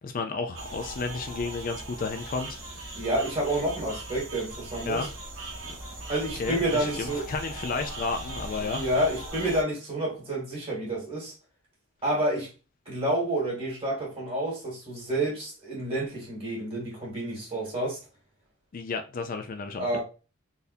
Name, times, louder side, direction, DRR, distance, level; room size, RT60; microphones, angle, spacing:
voice 1, 0.0-2.8 4.9-5.1 5.6-5.7 6.4-8.8 18.7-20.0, left 4 dB, 40° left, 0.4 m, -32 dB
sound 1, 0.5-9.6, right 2 dB, 75° right, 1.1 m, -39 dB
voice 2, 2.9-5.1 6.1-7.2 8.6-11.3 12.0-12.5 12.9-18.0 19.8-20.0, right 1 dB, 25° right, 2.1 m, -29 dB
4.0 x 2.6 x 2.7 m
head